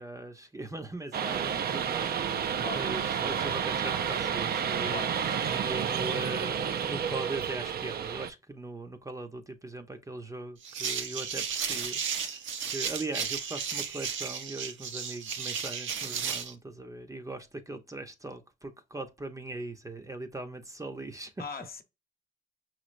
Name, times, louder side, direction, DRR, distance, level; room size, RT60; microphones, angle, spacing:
voice 1, 0.0-5.1 5.5-21.3, right 2 dB, 15° right, 0.7 m, -40 dB
sound 1, 1.1-8.3, right 8 dB, 50° right, 0.5 m, -30 dB
voice 2, 4.9-5.4 21.4-21.8, left 6 dB, 50° left, 1.0 m, -40 dB
sound 2, 10.6-16.5, right 7 dB, 75° right, 0.9 m, -34 dB
5.6 x 3.2 x 2.5 m
cardioid pair, 90°, 20 cm